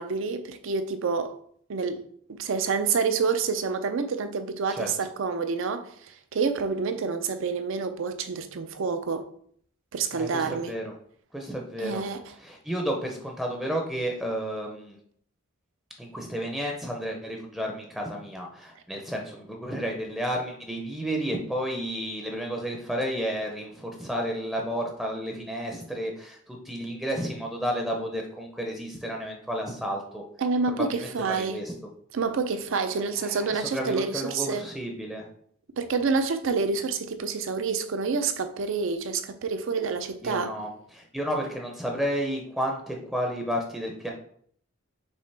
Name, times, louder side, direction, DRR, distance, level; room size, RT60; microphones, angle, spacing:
voice 1, 0.0-1.3 1.7-2.0 2.3-5.9 6.3-9.3 9.9-10.8 11.8-12.2 30.4-31.6 32.1-34.7 35.8-40.5, right 4 dB, 65° right, 0.4 m, -28 dB
voice 2, 10.1-10.9 11.3-12.0 12.4-15.0 16.0-30.2 30.7-31.7 33.2-35.3 40.2-44.1, equal, ahead, 0.5 m, -32 dB
5.4 x 2.9 x 3.3 m
head